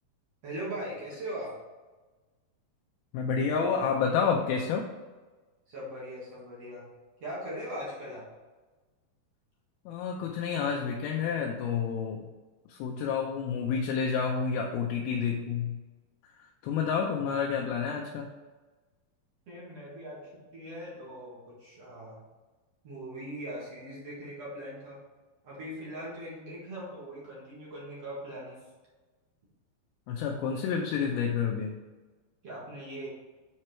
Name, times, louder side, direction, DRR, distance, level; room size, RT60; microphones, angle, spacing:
voice 1, 0.4-1.5 5.7-6.9 7.2-8.3 19.5-22.2 22.8-25.0 25.4-28.6 32.4-33.1, right 1 dB, 50° right, -6 dB, 2.6 m, -40 dB
voice 2, 3.1-4.9 9.9-12.2 12.7-15.8 16.4-18.3 30.1-31.8, left 6 dB, 80° left, 1 dB, 2.5 m, -29 dB
7.5 x 4.5 x 4.4 m, 1.3 s
omnidirectional pair, 4.4 m